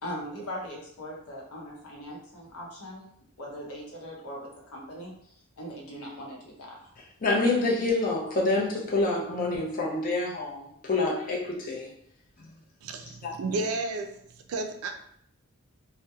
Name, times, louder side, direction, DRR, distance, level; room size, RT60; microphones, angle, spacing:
voice 1, 0.0-3.0 3.4-6.9 13.1-13.2, equal, 85° left, -2 dB, 0.8 m, -40 dB
voice 2, 7.2-11.9 13.2-13.3, left 2 dB, 40° left, -3 dB, 0.5 m, -27 dB
voice 3, 12.8-14.2 14.5-14.9, right 3 dB, 75° right, 5 dB, 0.4 m, -32 dB
2.8 x 2.1 x 2.2 m, 0.69 s
head